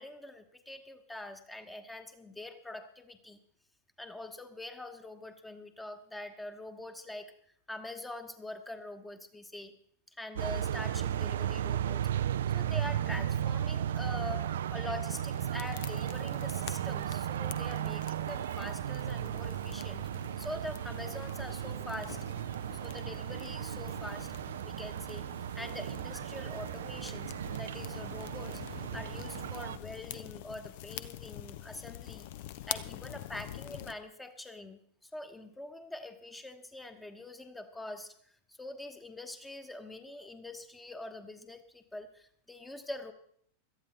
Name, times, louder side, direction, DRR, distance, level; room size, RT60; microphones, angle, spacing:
voice 1, 0.0-3.4 4.0-7.3 7.7-9.7 10.2-12.1 12.5-22.2 22.8-24.3 24.6-25.3 25.5-32.3 32.7-38.1 38.5-43.1, left 2 dB, 10° left, 8 dB, 1.2 m, -44 dB
sound 1, 10.4-29.8, right 10 dB, 60° right, 0.4 m, -35 dB
sound 2, 15.0-33.9, left 13 dB, 50° left, 0.6 m, -46 dB
18.0 x 13.0 x 3.4 m, 0.63 s
figure-of-eight pair, 90°, 0 cm